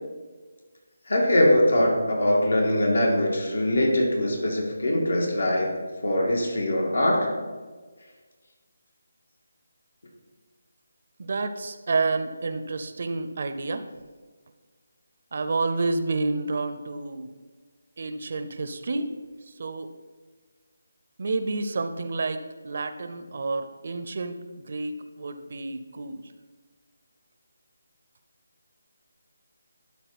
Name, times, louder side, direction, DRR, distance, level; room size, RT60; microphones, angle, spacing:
voice 1, 1.1-5.7 6.0-7.3, left 1 dB, 80° left, -1 dB, 2.2 m, -22 dB
voice 2, 11.2-13.9 15.3-17.3 18.0-19.1 19.5-19.9 21.2-24.4 24.6-26.3, right 3 dB, 50° right, 10 dB, 0.6 m, -29 dB
12.0 x 4.0 x 4.2 m, 1.4 s
figure-of-eight pair, 165°, 0 cm